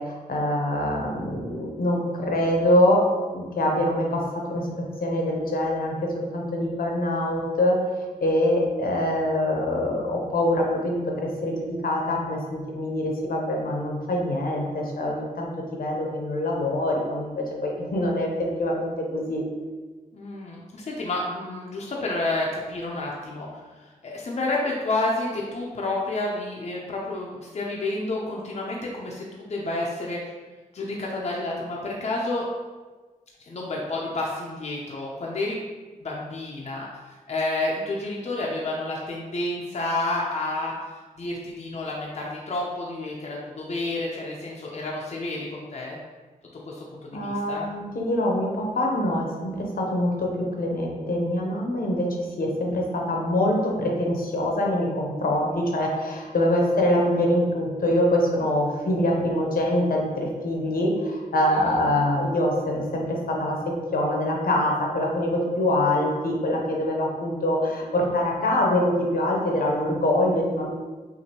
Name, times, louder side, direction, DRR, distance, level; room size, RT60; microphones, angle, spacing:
voice 1, 0.0-3.0 3.3-4.2 4.5-7.8 8.2-19.4 47.1-70.7, left 1 dB, 80° left, -1 dB, 0.9 m, -24 dB
voice 2, 20.1-30.3 30.7-32.4 33.5-35.6 36.0-46.0 46.7-47.7 61.5-61.8, left 2 dB, 50° left, -3 dB, 0.5 m, -30 dB
5.8 x 2.6 x 2.9 m, 1.3 s
wide cardioid pair, 160°, 15 cm